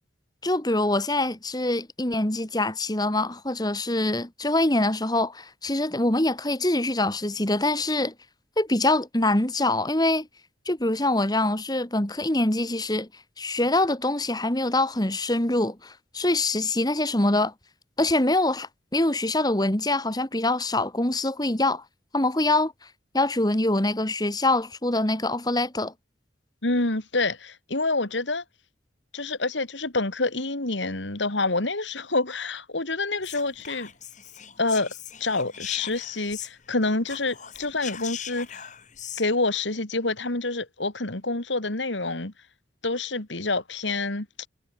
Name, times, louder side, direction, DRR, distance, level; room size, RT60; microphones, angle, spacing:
voice 1, 0.4-8.1 8.6-10.3 10.7-13.1 13.4-17.5 18.0-21.8 22.1-22.7 23.1-25.9, left 2 dB, 20° left, 2.3 m, -24 dB
voice 2, 26.6-28.4 29.1-33.9 34.6-34.9 35.2-38.6 39.2-42.3 42.8-44.5, left 3 dB, 85° left, 3.0 m, -27 dB
Whispering, 33.2-36.8 37.0-39.3, left 9 dB, 40° left, 7.1 m, -40 dB
head